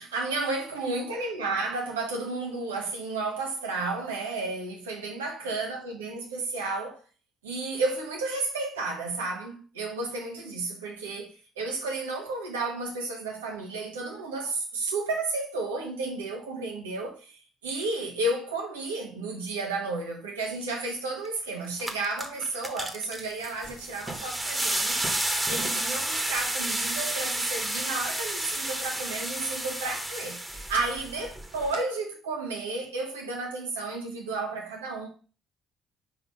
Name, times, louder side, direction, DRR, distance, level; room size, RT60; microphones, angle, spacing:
voice 1, 0.0-7.0 7.4-25.1 25.5-30.4 30.7-35.1, right 3 dB, 90° right, 1.3 m, -32 dB
sound 1, 21.2-21.3 21.7-31.7, right 1 dB, 10° right, 1.4 m, -31 dB
4.7 x 3.9 x 5.5 m
hypercardioid pair, 50°, 0 cm